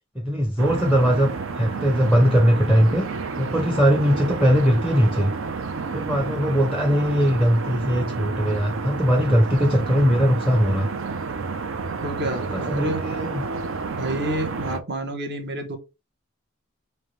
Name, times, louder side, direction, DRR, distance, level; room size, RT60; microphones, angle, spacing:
voice 1, 0.1-1.3 1.6-3.1 3.4-5.3 5.9-10.9 12.2-13.4, equal, 5° right, 0.6 m, -20 dB
sound 1, 0.6-14.8, right 4 dB, 75° right, 0.5 m, -30 dB
voice 2, 12.0-13.0 14.0-15.8, right 1 dB, 55° right, 1.0 m, -29 dB
5.6 x 2.2 x 3.1 m
head